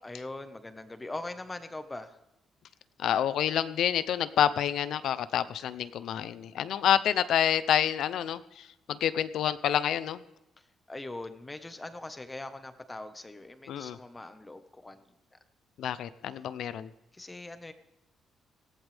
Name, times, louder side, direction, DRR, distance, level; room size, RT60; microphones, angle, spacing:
voice 1, 0.0-2.2 8.9-9.0 10.6-15.4 17.1-17.7, left 2 dB, 20° left, 9 dB, 1.5 m, -42 dB
voice 2, 3.0-10.2 13.7-14.0 15.8-16.9, left 10 dB, 75° left, 14 dB, 0.8 m, -28 dB
19.0 x 15.5 x 3.6 m, 0.91 s
cardioid pair, 90°, 0 cm